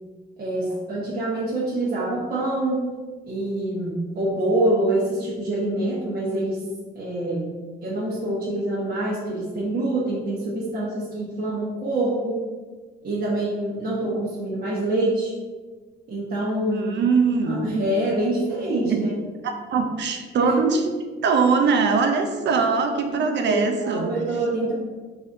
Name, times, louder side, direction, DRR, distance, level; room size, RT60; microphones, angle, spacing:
voice 1, 0.4-2.9 3.2-6.6 6.9-7.5 7.8-12.4 13.0-15.3 16.1-17.0 17.4-19.1 20.4-20.5 23.5-24.7, right 1 dB, 45° right, -8 dB, 1.2 m, -25 dB
voice 2, 16.7-17.6 18.8-19.0 19.4-20.8 21.2-24.2, right 5 dB, 65° right, 5 dB, 0.7 m, -22 dB
4.0 x 2.5 x 4.7 m, 1.4 s
cardioid pair, 90°, 20 cm